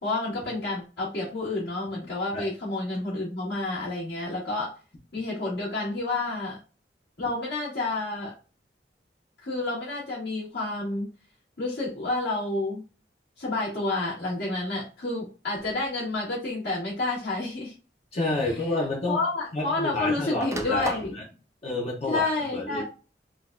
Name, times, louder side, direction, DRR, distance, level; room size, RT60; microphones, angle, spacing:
voice 1, 0.0-4.7 5.1-6.6 7.2-8.3 9.4-11.1 11.6-12.8 13.4-17.7 18.4-18.6 19.1-21.1 22.1-22.8, left 2 dB, 70° left, -9 dB, 1.7 m, -29 dB
sound 1, 15.6-15.9 16.9-17.0 18.4-18.5 18.7-19.9 20.2-21.2, right 1 dB, 15° right, 0.4 m, -36 dB
voice 2, 18.1-19.2 19.5-20.9 21.6-22.8, left 2 dB, 40° left, -1 dB, 0.7 m, -29 dB
3.9 x 2.3 x 2.5 m, 0.34 s
head